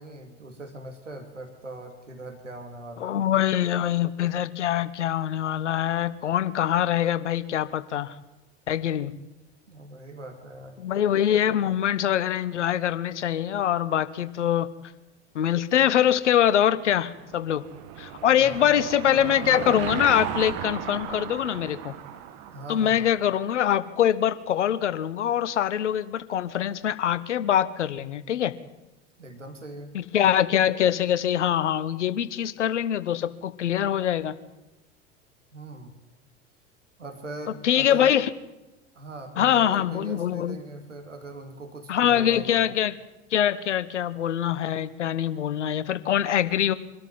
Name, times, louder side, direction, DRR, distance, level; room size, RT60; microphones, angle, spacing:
voice 1, 0.0-3.3 9.7-10.8 18.4-18.8 22.5-23.1 29.2-29.9 35.5-35.9 37.0-38.1 38.9-42.6, right 2 dB, 85° right, 6 dB, 2.6 m, -40 dB
voice 2, 3.0-8.1 8.7-9.1 10.8-14.7 15.3-17.6 18.0-22.0 22.7-28.6 29.9-34.3 37.6-38.3 39.4-40.6 41.9-43.0 43.3-46.7, left 10 dB, 75° left, 16 dB, 1.1 m, -24 dB
Car passing by / Engine, 16.8-23.6, right 10 dB, 50° right, 1.9 m, -36 dB
23.5 x 13.0 x 9.6 m, 1.0 s
figure-of-eight pair, 85°, 36 cm